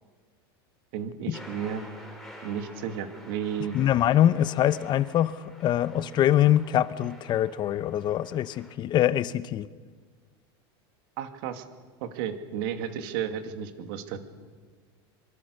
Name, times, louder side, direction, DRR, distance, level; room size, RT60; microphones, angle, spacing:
voice 1, 0.9-1.8 2.4-3.8 11.2-11.6 12.0-14.2, right 8 dB, 65° right, 7 dB, 2.6 m, -33 dB
sound 1, 1.3-8.8, left 1 dB, 5° left, 5.3 m, -49 dB
voice 2, 3.7-9.7, left 11 dB, 35° left, 16 dB, 0.9 m, -24 dB
25.0 x 24.0 x 6.6 m, 1.5 s
supercardioid pair, 135°, 13 cm